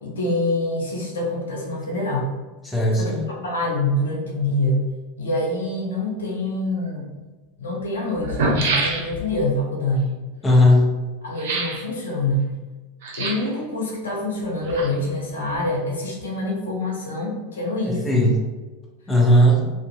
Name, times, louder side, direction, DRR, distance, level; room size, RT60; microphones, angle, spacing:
voice 1, 0.0-2.3 2.9-4.9 5.2-7.1 7.6-10.2 11.2-12.5 13.2-18.3 19.6-19.7, left 1 dB, 75° left, -2 dB, 0.6 m, -25 dB
voice 2, 2.6-3.2 10.4-10.9 17.8-18.3 19.1-19.7, equal, 10° left, -2 dB, 0.6 m, -17 dB
sound 1, 6.9-7.0 7.8-7.9 8.2-9.4 11.4-11.9 13.0-13.6 14.4-15.2 15.5-15.6, right 2 dB, 65° right, 0.5 m, -26 dB
2.6 x 2.4 x 2.2 m, 1.2 s
figure-of-eight pair, 85°, 0 cm